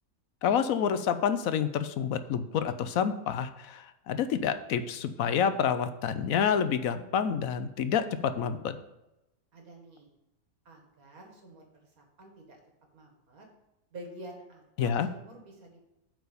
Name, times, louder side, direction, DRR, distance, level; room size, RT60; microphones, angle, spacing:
voice 1, 0.4-8.8 14.8-15.1, left 7 dB, 75° left, 11 dB, 1.0 m, -28 dB
voice 2, 9.5-10.1 10.7-12.6 12.9-13.5 13.9-15.8, right 1 dB, 70° right, 1 dB, 2.3 m, -49 dB
8.3 x 4.7 x 6.8 m, 0.92 s
omnidirectional pair, 1.5 m